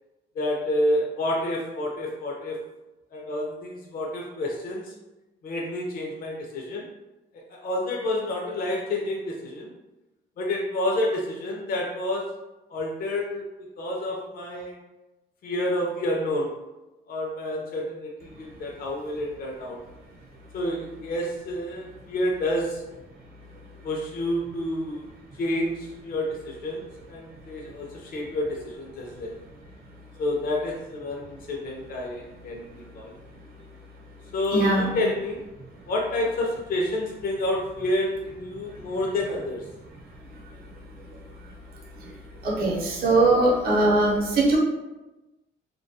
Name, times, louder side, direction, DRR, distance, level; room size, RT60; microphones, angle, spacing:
voice 1, 0.4-2.6 3.1-4.9 5.4-6.9 7.3-9.7 10.4-12.3 12.7-13.4 13.8-14.8 15.4-16.5 17.1-19.8 20.5-22.8 23.8-25.1 25.4-29.4 30.2-33.1 34.3-35.4 35.9-39.6, left 1 dB, 50° left, -1 dB, 0.4 m, -29 dB
voice 2, 34.5-34.9 42.0-42.1 42.4-44.6, right 2 dB, 50° right, -3 dB, 0.6 m, -21 dB
2.2 x 2.2 x 2.6 m, 1.1 s
cardioid pair, 90°, 20 cm